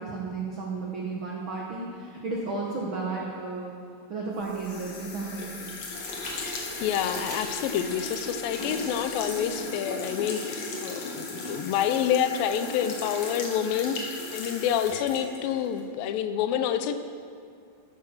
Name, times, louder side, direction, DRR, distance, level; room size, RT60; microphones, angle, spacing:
voice 1, 0.0-3.8 4.1-5.8 8.6-8.8, right 3 dB, 75° right, -2 dB, 1.1 m, -33 dB
sound 1, 4.4-15.8, left 3 dB, 55° left, 2.4 m, -37 dB
sound 2, 4.5-9.6, equal, ahead, 3.8 m, -45 dB
voice 2, 6.8-14.0 14.3-16.9, left 9 dB, 80° left, 10 dB, 2.3 m, -28 dB
14.5 x 8.8 x 6.3 m, 2.2 s
omnidirectional pair, 4.4 m